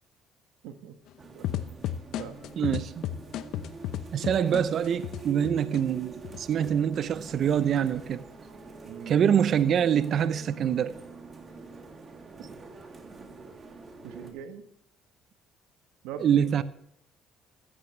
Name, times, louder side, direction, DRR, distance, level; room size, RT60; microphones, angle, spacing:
voice 1, 0.6-1.0 1.3-1.8 2.2-2.4 8.8-9.2 14.0-14.6 16.0-16.6, right 8 dB, 90° right, 1.3 m, -42 dB
sound 1, 1.2-14.3, right 3 dB, 40° right, 2.8 m, -45 dB
sound 2, 1.4-5.8 6.2-7.0, left 11 dB, 75° left, 0.8 m, -33 dB
voice 2, 2.6-2.9 4.1-8.2 9.1-10.9 16.2-16.6, right 8 dB, 55° right, 0.7 m, -25 dB
15.0 x 14.5 x 3.3 m
supercardioid pair, 85°, 0 cm